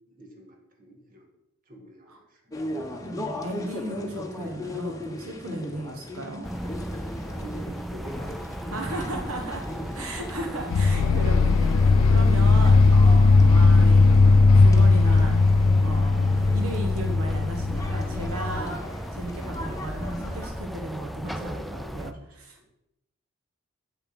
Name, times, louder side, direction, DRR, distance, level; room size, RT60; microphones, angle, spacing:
voice 1, 0.1-1.3 1.7-2.6 7.3-8.4 8.6-8.7 9.4-9.9 10.3-10.4 21.2-22.0 22.6-22.7, right 1 dB, 40° right, 2 dB, 2.0 m, -46 dB
sound 1, 2.5-20.5, left 1 dB, 15° left, 1.1 m, -38 dB
voice 2, 3.0-6.5 8.7-9.6 9.9-15.4 15.8-18.8 19.1-22.6, right 1 dB, 80° right, 3 dB, 1.3 m, -35 dB
sound 2, 6.4-22.1, equal, ahead, 0.4 m, -36 dB
sound 3, 10.7-18.6, left 3 dB, 85° left, 0.4 m, -18 dB
8.2 x 7.1 x 6.0 m, 0.83 s
head